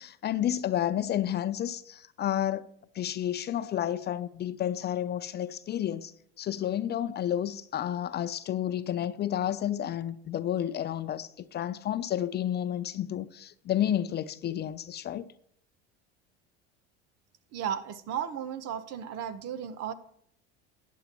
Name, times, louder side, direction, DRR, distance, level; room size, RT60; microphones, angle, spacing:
voice 1, 0.0-2.7 2.9-6.1 6.4-15.3, left 11 dB, 35° left, 0.5 m, -31 dB
voice 2, 17.5-19.9, right 9 dB, 55° right, 0.9 m, -34 dB
12.5 x 9.2 x 3.0 m
hypercardioid pair, 90°, 30 cm